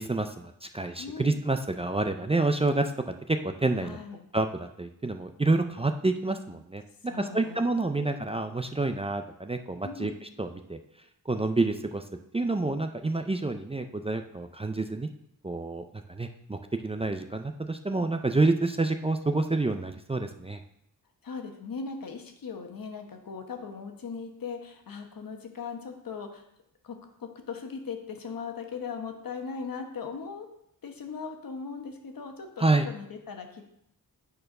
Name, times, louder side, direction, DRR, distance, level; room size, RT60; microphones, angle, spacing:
voice 1, 0.0-2.9 3.3-4.0 4.3-6.8 7.2-10.8 11.3-12.0 12.3-15.1 15.4-20.6 32.6-32.9, right 2 dB, 20° right, 6 dB, 0.4 m, -28 dB
voice 2, 1.0-1.4 3.8-4.2 7.1-7.6 8.0-8.1 9.8-10.1 21.2-26.4 26.8-30.5 30.8-33.7, left 5 dB, 75° left, 4 dB, 1.2 m, -39 dB
8.9 x 4.5 x 5.4 m, 0.76 s
wide cardioid pair, 150°, 35 cm